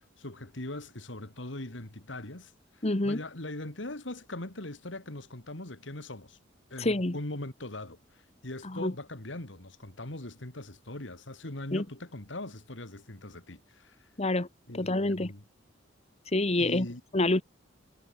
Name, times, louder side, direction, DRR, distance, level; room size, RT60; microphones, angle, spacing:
voice 1, 0.2-2.5 2.8-6.4 6.7-8.0 8.4-14.1 14.7-15.4 16.6-17.0, left 1 dB, 75° left, 2.9 m, -41 dB
voice 2, 2.8-3.2 6.8-7.2 8.6-8.9 11.7-11.8 14.2-14.5 14.7-15.3 16.3-16.9 17.1-17.4, left 2 dB, 35° left, 1.4 m, -27 dB
head